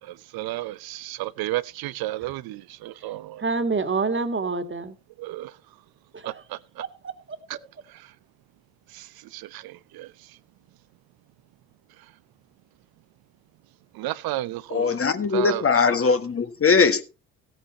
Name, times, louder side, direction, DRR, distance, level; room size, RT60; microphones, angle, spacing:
voice 1, 0.0-3.4 5.2-5.6 6.2-6.8 7.9-8.1 8.9-10.4 13.9-15.0 15.3-15.6, right 16 dB, 60° right, 0.8 m, -33 dB
voice 2, 3.4-5.0 6.1-6.3 6.8-7.4, right 4 dB, 30° right, 2.5 m, -27 dB
voice 3, 14.7-17.0, left 5 dB, 35° left, 1.7 m, -20 dB
17.5 x 8.9 x 2.9 m
hypercardioid pair, 50°, 41 cm